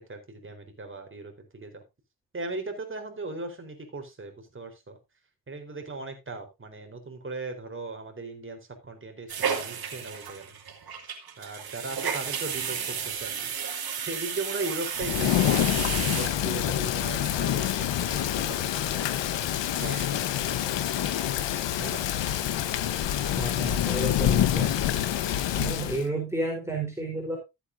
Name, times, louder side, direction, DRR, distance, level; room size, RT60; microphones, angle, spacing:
voice 1, 0.1-1.8 2.3-5.0 5.5-10.5 11.4-19.3 19.8-20.7 21.8-22.1, right 2 dB, 30° right, 4 dB, 4.0 m, -38 dB
sound 1, 9.3-16.9 17.2-17.3 17.6-17.7 18.0-18.3 18.7-18.8 19.3-19.4 19.7-20.3 20.5-20.6 20.9-21.4 21.8-21.9, right 7 dB, 55° right, 2.5 m, -33 dB
Thunder / Rain, 15.0-26.0, left 11 dB, 85° left, 1.2 m, -27 dB
voice 2, 23.4-24.8 25.5-27.4, right 2 dB, 5° right, -1 dB, 4.0 m, -31 dB
14.5 x 8.3 x 2.7 m, 0.23 s
cardioid pair, 85°, 42 cm